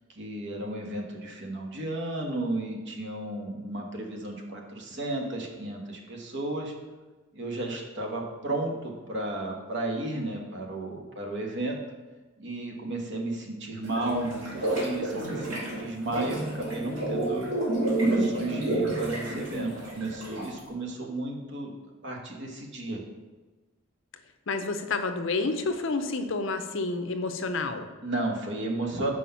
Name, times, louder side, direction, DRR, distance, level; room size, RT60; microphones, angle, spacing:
voice 1, 0.1-6.7 7.3-11.8 12.4-17.5 17.9-21.7 22.0-23.0 28.0-29.1, right 2 dB, 60° right, 1 dB, 1.2 m, -33 dB
sound 1, 13.8-20.6, right 2 dB, 75° right, 2.0 m, -30 dB
voice 2, 24.5-27.9, left 3 dB, 65° left, 8 dB, 0.6 m, -29 dB
5.7 x 5.0 x 5.6 m, 1.2 s
head